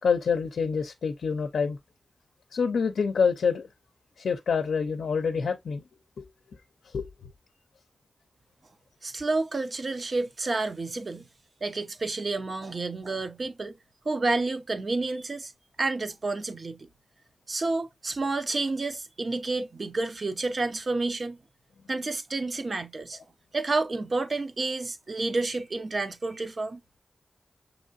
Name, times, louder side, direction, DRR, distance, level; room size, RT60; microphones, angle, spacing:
voice 1, 0.0-1.8 2.5-3.7 4.2-5.8 6.2-6.3 6.8-7.3, left 5 dB, 90° left, 0.5 m, -27 dB
voice 2, 9.0-11.3 11.6-13.7 14.0-15.5 15.8-16.9 17.5-21.4 21.9-23.2 23.5-26.8, right 3 dB, 50° right, 0.7 m, -30 dB
6.4 x 2.9 x 2.5 m
cardioid pair, 65°, 0 cm